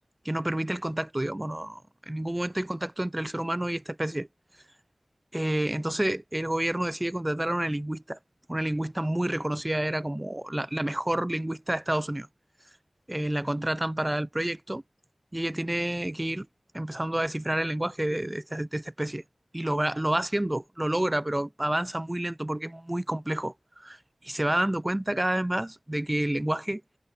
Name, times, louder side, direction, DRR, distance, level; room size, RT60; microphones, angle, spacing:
voice 1, 0.2-4.3 5.3-8.2 8.5-12.3 13.1-14.8 15.3-16.5 16.7-19.2 19.5-24.0 24.2-26.8, right 1 dB, 20° right, 0.7 m, -29 dB
wide cardioid pair, 50°, 0 cm